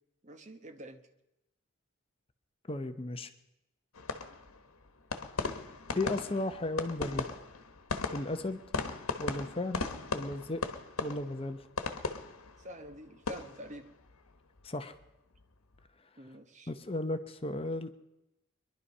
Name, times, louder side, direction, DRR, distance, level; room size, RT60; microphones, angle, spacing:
voice 1, 0.2-1.0 12.6-13.9 16.2-16.7, equal, 35° right, 8 dB, 1.0 m, -47 dB
voice 2, 2.7-3.3 5.9-7.3 8.1-8.6 9.2-9.8 10.1-10.6 11.0-11.6 14.6-15.0 16.7-17.9, left 2 dB, 25° left, 9 dB, 0.7 m, -35 dB
sound 1, 3.9-15.1 15.3-15.8, left 4 dB, 85° left, 1.2 m, -38 dB
23.0 x 11.5 x 5.5 m, 0.90 s
head